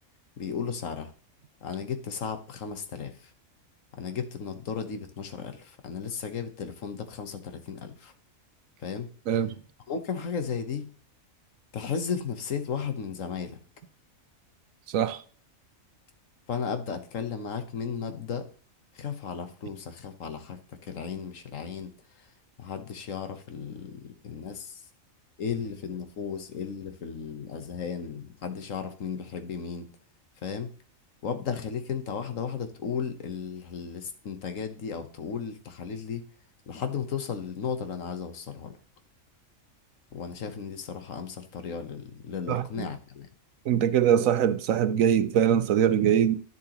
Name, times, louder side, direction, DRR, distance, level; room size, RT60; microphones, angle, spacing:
voice 1, 0.4-1.1 1.6-3.3 4.0-8.1 8.8-9.1 9.9-10.9 11.7-13.6 16.5-18.5 18.9-22.3 22.6-24.8 25.4-29.9 30.4-30.7 31.2-36.2 36.7-38.7 40.1-43.3, left 6 dB, 70° left, 1.4 m, -35 dB
voice 2, 14.9-15.2 42.5-42.9 43.6-46.4, right 9 dB, 75° right, 1.1 m, -23 dB
10.5 x 6.9 x 2.9 m
omnidirectional pair, 1.4 m